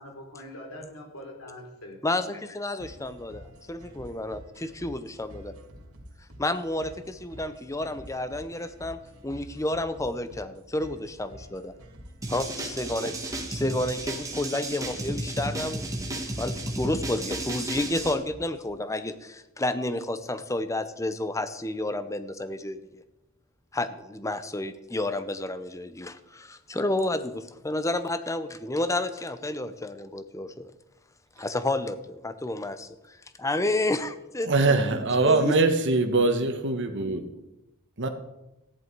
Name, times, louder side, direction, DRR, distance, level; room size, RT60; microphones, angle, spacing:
voice 1, 0.0-2.4, left 1 dB, 70° left, 1 dB, 3.3 m, -43 dB
voice 2, 2.0-5.5 6.4-9.0 9.2-11.7 12.3-23.0 23.7-30.7 31.4-35.6, left 2 dB, 15° left, 12 dB, 0.7 m, -31 dB
sound 1, 2.8-18.8, equal, 75° right, 2.8 m, -48 dB
sound 2, 12.2-18.1, right 1 dB, 15° right, 1.5 m, -33 dB
voice 3, 34.4-37.2 38.0-38.1, right 3 dB, 55° right, 6 dB, 1.3 m, -23 dB
14.0 x 10.5 x 4.7 m, 0.94 s
head